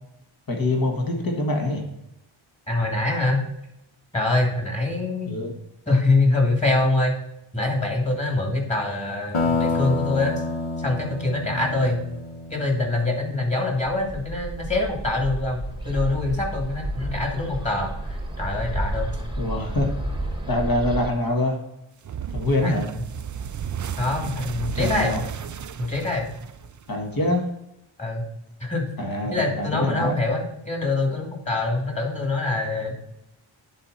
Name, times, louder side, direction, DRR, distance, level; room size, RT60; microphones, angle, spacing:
voice 1, 0.5-1.8 5.3-5.5 19.4-19.9 20.5-21.6 22.3-22.9 24.8-25.2 26.9-27.5 29.0-30.2, left 2 dB, 45° left, 2 dB, 1.6 m, -24 dB
voice 2, 2.7-3.4 4.1-5.4 5.9-7.1 7.5-10.4 10.8-12.0 12.5-19.1 22.6-23.0 24.0-25.1 25.8-26.3 28.0-28.3 28.6-28.8 29.3-32.9, left 2 dB, 15° left, 0 dB, 2.6 m, -24 dB
sound 1, 9.3-13.6, left 3 dB, 85° left, 1.3 m, -28 dB
Bird, 14.0-21.1, right 1 dB, 10° right, 1.2 m, -31 dB
sound 2, 22.0-27.2, right 8 dB, 40° right, 0.4 m, -33 dB
10.5 x 4.4 x 4.1 m, 0.84 s
wide cardioid pair, 65°, 49 cm